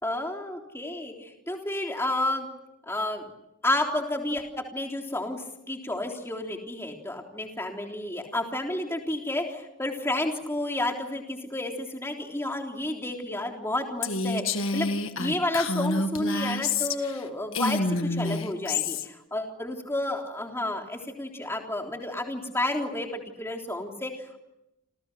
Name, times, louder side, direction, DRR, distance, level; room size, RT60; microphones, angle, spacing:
voice 1, 0.0-2.5 2.9-3.3 3.6-4.4 4.7-24.1, left 1 dB, 10° left, 2 dB, 3.5 m, -31 dB
Female speech woman speaking, 14.0-17.2 17.5-19.1, left 3 dB, 60° left, 1.8 m, -28 dB
29.0 x 28.5 x 6.2 m, 0.88 s
head